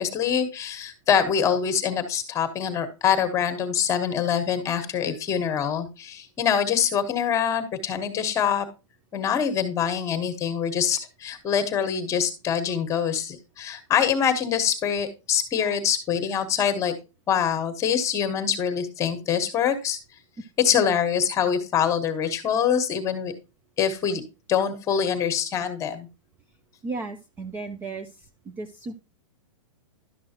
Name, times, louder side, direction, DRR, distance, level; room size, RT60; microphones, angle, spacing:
voice 1, 0.0-8.7 9.1-16.9 17.3-20.0 20.6-23.3 23.8-24.2 24.5-26.1, left 8 dB, 20° left, 8 dB, 1.2 m, -24 dB
voice 2, 26.8-28.3 28.6-29.0, right 3 dB, 10° right, 8 dB, 0.4 m, -34 dB
11.5 x 6.1 x 2.9 m, 0.29 s
hypercardioid pair, 150°, 17 cm